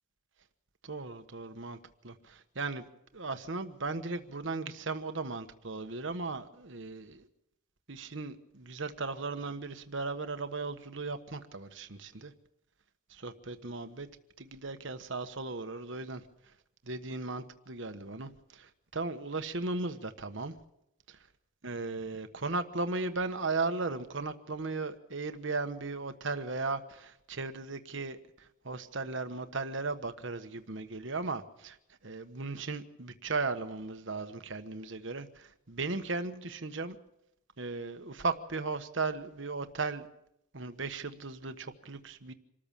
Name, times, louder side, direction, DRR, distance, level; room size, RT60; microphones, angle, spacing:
voice 1, 0.8-1.8 2.0-2.9 3.1-7.3 7.9-12.3 13.1-14.1 14.4-16.2 16.8-20.5 21.1-21.2 21.6-31.8 32.0-37.0 37.6-40.1 40.5-42.3, right 3 dB, 65° right, 8 dB, 1.2 m, -36 dB
26.0 x 14.0 x 7.4 m, 0.81 s
head